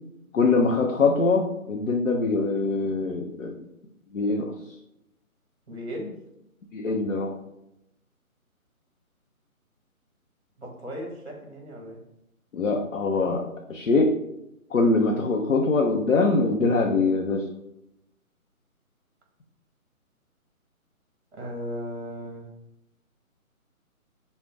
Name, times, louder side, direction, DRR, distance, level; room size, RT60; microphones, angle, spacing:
voice 1, 0.3-3.6 4.1-4.5 6.7-7.4 12.5-14.2 14.7-17.5, left 3 dB, 65° left, 1 dB, 0.6 m, -23 dB
voice 2, 5.7-6.2 10.6-12.0 21.3-22.5, equal, 50° right, 0 dB, 1.5 m, -36 dB
5.2 x 2.1 x 3.4 m, 0.84 s
hypercardioid pair, 180°, 43 cm